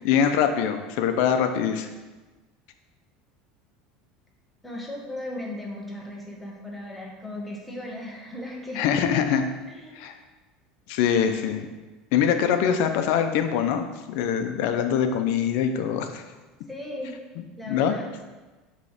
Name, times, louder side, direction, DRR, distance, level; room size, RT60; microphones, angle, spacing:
voice 1, 0.0-1.9 8.7-9.5 10.0-10.2 10.9-11.7 12.1-16.2 17.7-17.9, left 8 dB, 65° left, 7 dB, 0.6 m, -23 dB
voice 2, 4.6-9.0 9.7-9.9 16.7-17.2 17.6-18.1, left 1 dB, 5° left, -2 dB, 1.1 m, -36 dB
6.7 x 3.2 x 5.0 m, 1.2 s
supercardioid pair, 140°, 3 cm